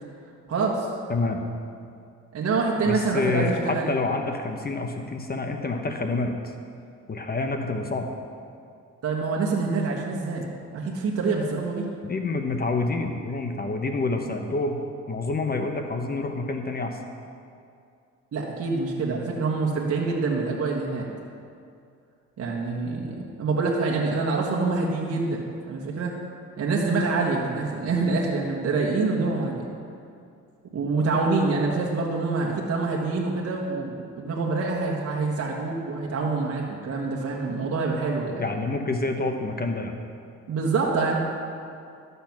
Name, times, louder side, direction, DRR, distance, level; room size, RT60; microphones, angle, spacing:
voice 1, 0.5-0.9 2.3-3.9 9.0-10.5 10.7-11.9 18.3-21.1 22.4-26.1 26.6-29.7 30.7-38.4 40.5-41.2, right 3 dB, 55° right, -3 dB, 1.4 m, -26 dB
voice 2, 1.1-1.4 2.9-6.3 7.1-8.1 12.0-14.8 15.1-17.0 38.4-39.9, left 3 dB, 30° left, 4 dB, 1.1 m, -27 dB
12.5 x 6.9 x 5.9 m, 2.4 s
cardioid pair, 90°, 30 cm